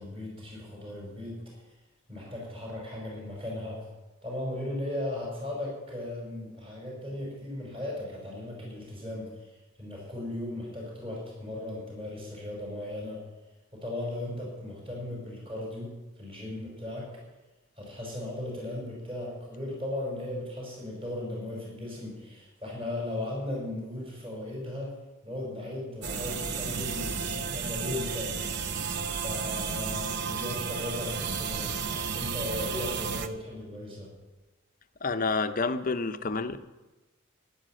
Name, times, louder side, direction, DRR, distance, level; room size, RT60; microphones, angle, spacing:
voice 1, 0.0-1.4 2.1-3.8 4.2-13.2 13.7-17.1 17.8-24.9 25.2-28.5 29.2-31.9 32.1-34.1, left 1 dB, 25° right, -3 dB, 5.3 m, -37 dB
sound 1, 26.0-33.3, right 5 dB, 55° right, 0.9 m, -32 dB
voice 2, 35.0-36.6, left 4 dB, 40° left, 10 dB, 0.8 m, -29 dB
13.0 x 10.5 x 7.6 m, 1.1 s
head